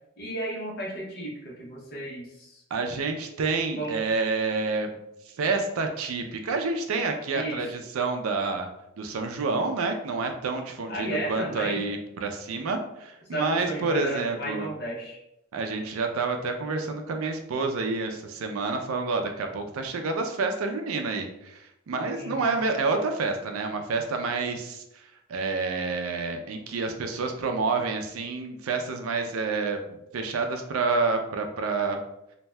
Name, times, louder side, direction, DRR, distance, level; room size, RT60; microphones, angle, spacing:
voice 1, 0.2-2.6 3.8-4.0 7.3-7.6 10.9-11.8 13.3-15.2 22.1-22.5, right 1 dB, 50° left, -4 dB, 0.9 m, -34 dB
voice 2, 2.7-4.9 5.3-8.7 9.0-14.7 15.5-32.0, right 4 dB, 80° right, 5 dB, 0.4 m, -28 dB
2.6 x 2.1 x 3.2 m, 0.84 s
head